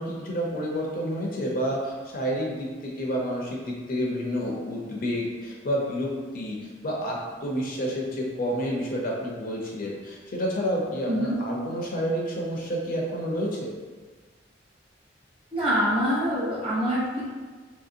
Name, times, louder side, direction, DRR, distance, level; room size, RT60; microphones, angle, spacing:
voice 1, 0.0-13.5, equal, 50° left, -2 dB, 0.5 m, -29 dB
voice 2, 15.5-17.3, equal, 30° right, -7 dB, 0.9 m, -25 dB
2.9 x 2.7 x 2.5 m, 1.4 s
head